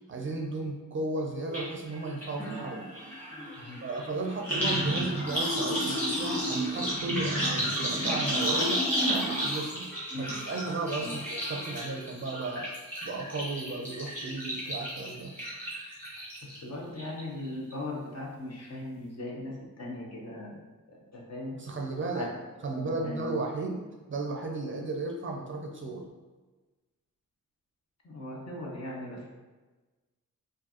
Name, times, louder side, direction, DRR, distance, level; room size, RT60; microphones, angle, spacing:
voice 1, 0.1-2.9 3.8-8.9 9.4-12.7 13.0-15.3 21.5-22.3 22.6-26.1, right 2 dB, 40° right, 1 dB, 0.4 m, -34 dB
sound 1, 1.5-1.6 1.9-16.6 17.0-17.4 17.7-17.8, equal, 5° left, 1.4 m, -32 dB
voice 2, 16.4-20.6 21.1-21.5 22.1-22.3 22.7-23.3 28.0-29.3, left 1 dB, 50° left, -2 dB, 0.9 m, -39 dB
4.5 x 2.5 x 2.8 m, 1.2 s
wide cardioid pair, 140°, 33 cm